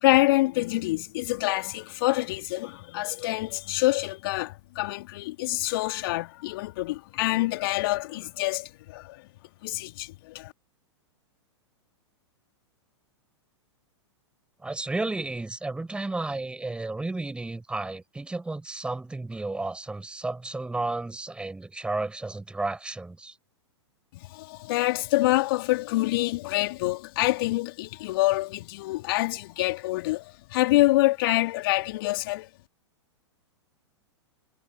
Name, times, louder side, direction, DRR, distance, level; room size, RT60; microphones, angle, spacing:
voice 1, 0.0-9.3 9.6-10.5 24.1-32.5, left 19 dB, 50° left, 2.6 m, -26 dB
voice 2, 14.6-23.4, right 2 dB, 5° right, 5.4 m, -32 dB
figure-of-eight pair, 105°, 15 cm